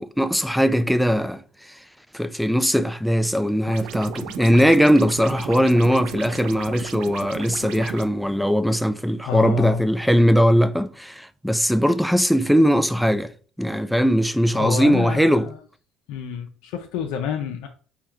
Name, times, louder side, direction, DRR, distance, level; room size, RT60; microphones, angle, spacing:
voice 1, 0.0-1.8 2.1-13.3 13.6-15.5, equal, ahead, 0.4 m, -20 dB
sound 1, 3.7-8.1, right 10 dB, 80° right, 0.4 m, -35 dB
voice 2, 9.2-9.8 14.6-15.6 16.1-17.7, left 8 dB, 80° left, 0.5 m, -28 dB
4.6 x 2.3 x 4.3 m
supercardioid pair, 90°, 0 cm